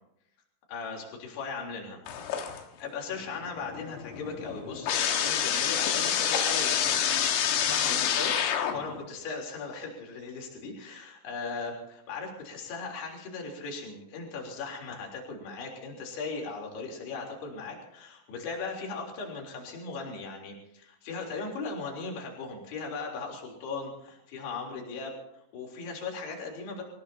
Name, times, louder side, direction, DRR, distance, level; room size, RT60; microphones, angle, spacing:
voice 1, 0.7-2.0 2.8-8.4 8.7-25.1 25.5-26.8, left 4 dB, 55° left, -1 dB, 5.5 m, -38 dB
sound 1, 2.1-2.9 3.2-9.0, left 9 dB, 85° left, 4.2 m, -28 dB
27.0 x 17.5 x 2.9 m, 0.75 s
omnidirectional pair, 5.7 m